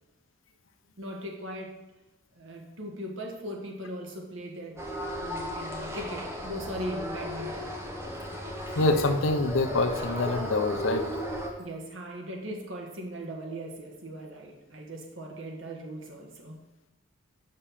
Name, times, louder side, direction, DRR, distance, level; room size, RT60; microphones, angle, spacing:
voice 1, 1.0-1.8 2.3-7.7 11.6-16.6, right 1 dB, 65° right, 1 dB, 1.6 m, -39 dB
sound 1, 4.8-11.5, equal, 15° right, 1.1 m, -35 dB
voice 2, 8.8-11.1, left 2 dB, 70° left, 7 dB, 0.8 m, -25 dB
6.7 x 5.6 x 7.3 m, 1.1 s
head